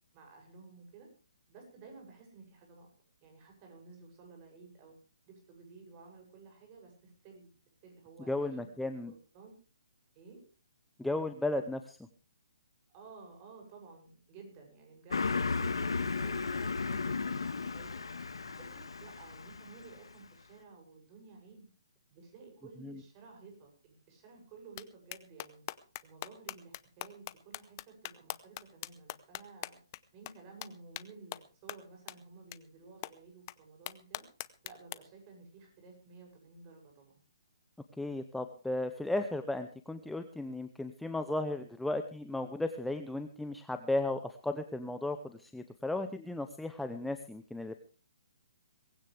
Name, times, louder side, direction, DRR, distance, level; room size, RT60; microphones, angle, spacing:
voice 1, 0.1-1.1 1.5-2.9 3.2-5.0 5.3-7.5 7.8-9.0 9.3-9.5 10.1-10.4 12.9-18.0 18.5-21.7 22.1-25.6 26.0-29.8 30.1-34.3 34.6-37.2, right 4 dB, 30° right, 3 dB, 7.7 m, -54 dB
voice 2, 8.3-9.1 11.0-12.0 22.8-23.0 38.0-47.9, left 2 dB, ahead, 8 dB, 0.7 m, -35 dB
Car passing by, 15.1-20.1, left 4 dB, 85° left, 1.7 m, -34 dB
sound 1, 24.8-24.9 25.1-30.0 30.2-30.3 30.6-30.7 30.9-31.0 31.3-31.4 31.7-31.8 32.1-32.2 32.5-32.6 33.0-33.1 33.5-33.6 33.9-34.9, left 17 dB, 30° left, 0.8 m, -41 dB
19.5 x 16.5 x 3.5 m, 0.37 s
hypercardioid pair, 150°, 3 cm